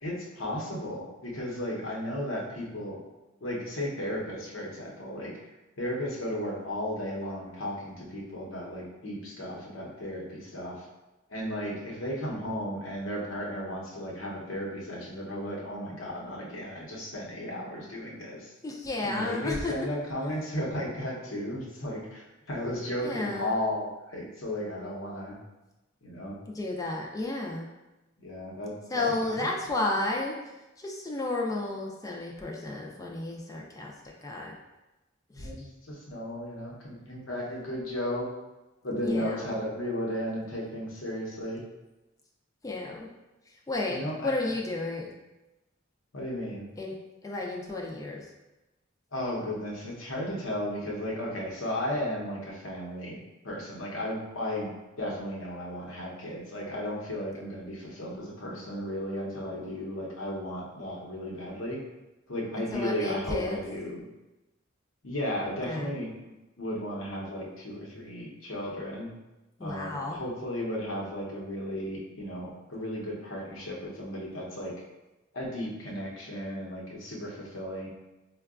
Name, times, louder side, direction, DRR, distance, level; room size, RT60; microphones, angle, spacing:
voice 1, 0.0-3.0 3.4-5.3 5.8-10.9 11.3-18.5 19.0-25.4 26.0-26.4 28.2-29.5 35.3-38.3 38.8-41.6 43.9-44.3 46.1-46.7 49.1-53.2 53.4-61.8 62.3-64.0 65.0-66.3 66.6-69.1 69.6-74.7 75.3-77.9, equal, 80° left, -3 dB, 0.8 m, -34 dB
voice 2, 18.6-19.7 23.0-23.5 26.5-27.7 28.9-30.4 30.8-33.9 34.2-34.5 35.3-35.5 39.0-39.6 42.6-43.1 43.7-45.1 46.8-46.9 47.2-48.3 62.7-63.6 65.4-65.9 69.6-70.2, left 2 dB, 20° left, -1 dB, 0.3 m, -32 dB
4.6 x 2.2 x 2.4 m, 1.0 s
head